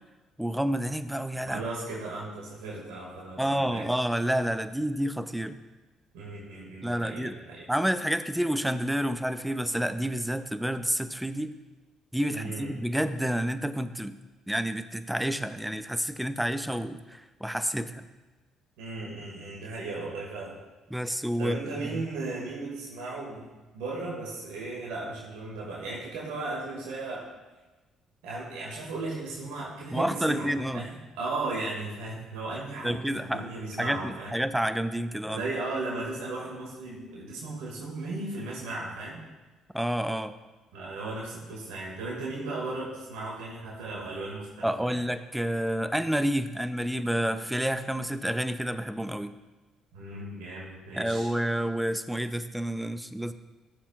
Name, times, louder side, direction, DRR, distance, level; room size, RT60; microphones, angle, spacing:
voice 1, 0.4-1.6 3.4-5.6 6.8-7.4 7.7-11.5 12.1-14.2 14.5-18.0 20.9-21.6 21.9-22.0 29.9-30.9 32.8-33.5 33.8-35.4 39.7-40.3 44.6-49.3 50.9-53.3, equal, 5° right, 11 dB, 0.7 m, -29 dB
voice 2, 1.5-3.9 6.1-7.7 12.3-12.7 18.8-20.5 21.4-23.5 23.7-27.3 28.2-34.4 35.3-39.3 40.7-45.0 49.9-51.3, right 2 dB, 75° right, -4 dB, 2.2 m, -36 dB
16.0 x 7.1 x 2.5 m, 1.2 s
hypercardioid pair, 50°, 0 cm